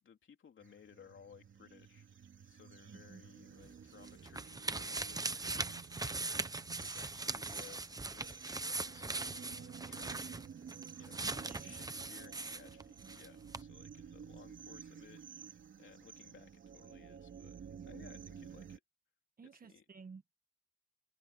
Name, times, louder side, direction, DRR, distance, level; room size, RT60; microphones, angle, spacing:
voice 1, 0.0-2.1 2.4-7.9 8.1-10.4 11.0-15.4 15.8-17.6 17.8-18.8 19.5-19.8, left 7 dB, 85° left, 3.3 m, -60 dB
sound 1, 0.6-18.8, right 7 dB, 80° right, 3.3 m, -53 dB
voice 2, 2.9-3.2 11.2-11.7 13.0-13.2 19.4-20.3, right 5 dB, 50° right, 1.6 m, -54 dB
sound 2, 3.6-13.3 13.5-13.6, right 3 dB, 20° right, 0.8 m, -40 dB
wide cardioid pair, 150°, 20 cm